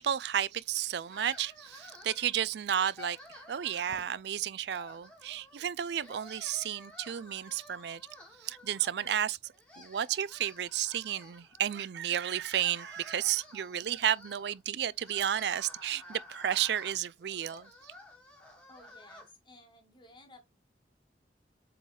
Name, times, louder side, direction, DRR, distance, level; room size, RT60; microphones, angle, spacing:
voice 1, 0.0-8.0 8.4-17.9, right 10 dB, 65° right, 0.4 m, -32 dB
sound 1, 1.1-2.3 2.7-4.2 4.7-5.6 5.9-9.2 9.5-11.8 12.3-19.3, left 1 dB, 5° left, 2.0 m, -52 dB
voice 2, 18.7-20.5, left 2 dB, 25° left, 1.8 m, -56 dB
7.7 x 3.8 x 3.2 m
head